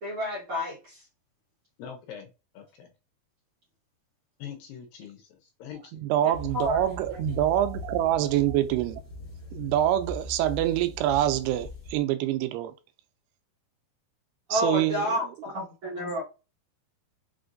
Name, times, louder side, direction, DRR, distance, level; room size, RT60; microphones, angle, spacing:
voice 1, 0.0-1.0 6.5-6.9 7.1-7.2 14.5-16.2, left 1 dB, 60° right, 1.5 m, -30 dB
voice 2, 1.8-2.3 2.5-2.9 4.4-6.0, left 8 dB, 75° left, 2.3 m, -43 dB
voice 3, 5.9-9.0 9.5-12.7 14.5-15.2, right 12 dB, 85° right, 2.5 m, -25 dB
sound 1, 6.3-12.0, left 1 dB, 40° left, 1.2 m, -40 dB
5.9 x 2.5 x 2.5 m
omnidirectional pair, 4.5 m